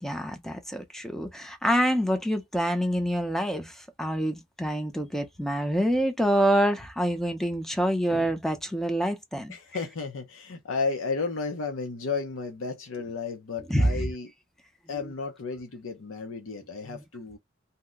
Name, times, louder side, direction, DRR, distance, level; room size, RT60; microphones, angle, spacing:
voice 1, 0.0-9.5 13.7-14.1 16.9-17.0, equal, ahead, 0.5 m, -26 dB
voice 2, 9.5-14.3 14.9-17.4, left 4 dB, 80° left, 0.6 m, -33 dB
2.7 x 2.1 x 3.6 m
head